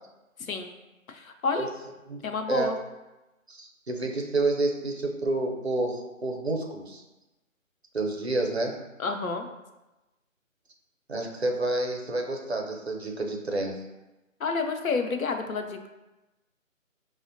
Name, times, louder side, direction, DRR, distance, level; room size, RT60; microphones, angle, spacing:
voice 1, 0.4-0.7 1.1-1.7 2.2-2.8 9.0-9.5 14.4-15.9, left 4 dB, 90° left, 5 dB, 0.6 m, -29 dB
voice 2, 2.1-2.7 3.5-7.0 7.9-8.8 11.1-13.8, right 2 dB, 55° right, 2 dB, 0.5 m, -29 dB
5.0 x 2.0 x 2.6 m, 1.0 s
figure-of-eight pair, 180°, 40 cm